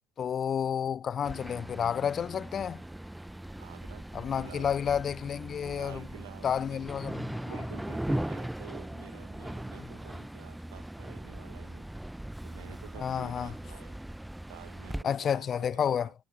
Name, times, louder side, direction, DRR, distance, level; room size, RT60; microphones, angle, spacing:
voice 1, 0.2-2.8 4.1-6.0 6.4-7.5 13.0-13.5 15.0-16.1, left 8 dB, 40° left, 0.4 m, -30 dB
sound 1, 1.2-15.0, right 1 dB, 5° right, 0.7 m, -39 dB
voice 2, 3.6-4.8 5.5-6.8 7.4-11.9 12.4-14.0 14.5-16.1, right 18 dB, 75° right, 1.5 m, -51 dB
figure-of-eight pair, 60°, 0 cm